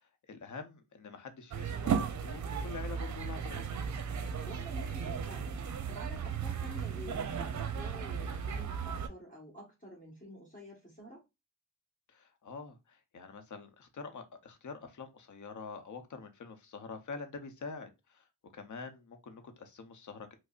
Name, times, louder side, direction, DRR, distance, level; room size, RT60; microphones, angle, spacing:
voice 1, 0.3-3.8 12.1-18.3 18.5-20.3, left 4 dB, 60° left, 0.7 m, -46 dB
sound 1, 1.5-9.1, right 7 dB, 55° right, 0.5 m, -35 dB
voice 2, 4.4-5.6 5.9-11.2, equal, 25° left, 1.3 m, -49 dB
5.0 x 2.0 x 2.4 m
wide cardioid pair, 95°, 34 cm